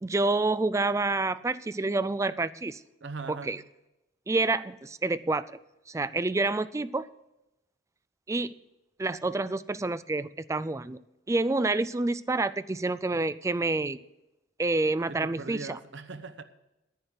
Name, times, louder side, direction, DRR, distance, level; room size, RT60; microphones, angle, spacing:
voice 1, 0.0-2.8 3.3-3.6 4.3-5.5 5.9-7.1 8.3-8.5 9.0-11.0 11.3-14.0 14.6-15.8, right 2 dB, 15° right, 0.4 m, -28 dB
voice 2, 3.0-3.7 15.1-16.4, right 4 dB, 85° right, 0.9 m, -40 dB
10.5 x 9.4 x 6.6 m
head